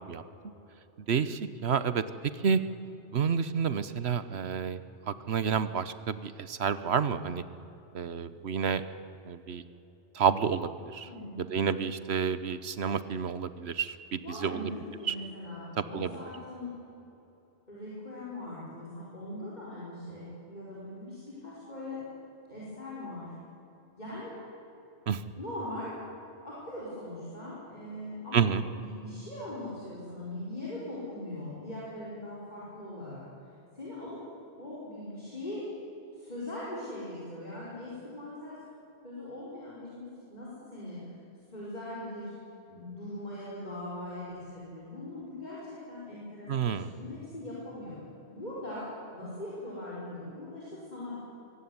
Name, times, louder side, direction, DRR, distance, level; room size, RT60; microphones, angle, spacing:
voice 1, 1.1-2.0 2.4-2.6 3.1-4.8 5.1-7.4 7.9-8.8 9.3-9.6 10.1-11.1 11.4-14.6 15.1-15.2 15.9-16.1 25.1-25.2 28.3-28.6 46.5-46.9, right 6 dB, 70° right, 13 dB, 1.1 m, -29 dB
voice 2, 11.1-11.5 14.2-16.7 17.7-22.0 22.5-23.3 24.0-24.4 25.4-26.0 26.4-33.2 33.7-34.2 34.6-35.7 36.1-38.6 39.0-41.0 41.5-42.3 42.7-48.0 48.3-48.9 49.1-51.2, left 1 dB, 40° left, -7 dB, 5.4 m, -41 dB
23.5 x 16.5 x 9.6 m, 2.9 s
omnidirectional pair, 1.1 m